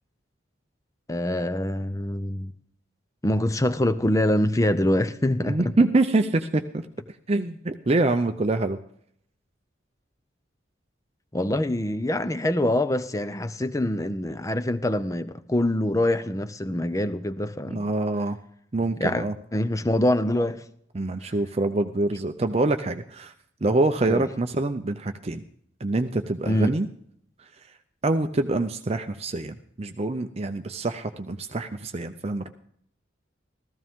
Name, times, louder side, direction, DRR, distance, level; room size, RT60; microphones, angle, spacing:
voice 1, 1.1-2.5 3.2-5.7 11.3-17.9 19.0-19.3 19.5-20.6 24.1-24.3 26.5-26.7, left 1 dB, 15° left, 0.6 m, -25 dB
voice 2, 5.4-6.8 7.3-8.8 17.7-18.4 18.7-19.3 20.9-23.3 23.6-25.4 25.8-26.9 28.0-32.5, right 2 dB, 35° right, 0.6 m, -25 dB
15.5 x 14.0 x 3.6 m
head